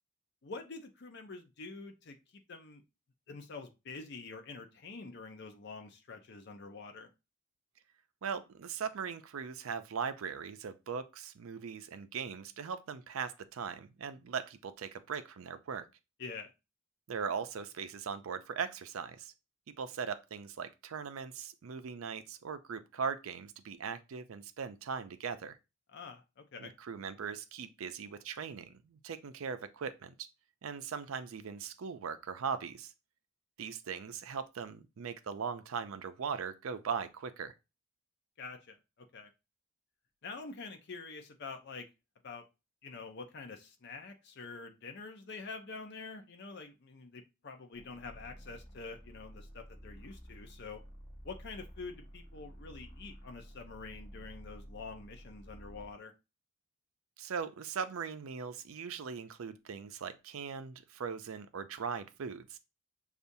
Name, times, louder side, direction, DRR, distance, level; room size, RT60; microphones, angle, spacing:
voice 1, 0.4-2.8 3.3-7.1 16.2-16.5 25.9-26.7 38.4-39.3 40.2-41.9 42.2-42.4 42.8-50.8 51.2-56.1, left 4 dB, 55° left, 0.6 m, -46 dB
voice 2, 8.2-15.8 17.1-19.3 19.8-25.6 26.6-30.3 30.6-32.9 33.6-37.5 57.2-62.6, right 6 dB, 80° right, 0.5 m, -39 dB
sound 1, 47.7-56.0, equal, 20° left, 0.8 m, -52 dB
6.7 x 2.4 x 2.6 m
head